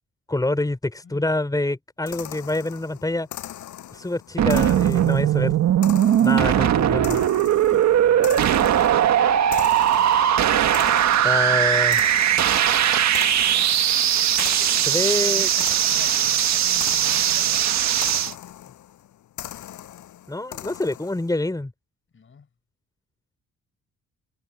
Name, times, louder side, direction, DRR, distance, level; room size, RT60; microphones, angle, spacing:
voice 1, 0.3-3.3 3.9-5.5 6.2-7.2 11.2-12.0 14.9-15.5 20.3-21.7, left 2 dB, 10° left, 4.8 m, -26 dB
sound 1, 2.1-21.4, left 12 dB, 75° left, 7.8 m, -40 dB
sound 2, 4.4-18.3, right 10 dB, 65° right, 1.6 m, -19 dB
voice 2, 7.5-8.8 14.4-18.7 22.1-22.5, left 6 dB, 40° left, 7.0 m, -45 dB
cardioid pair, 90°, 30 cm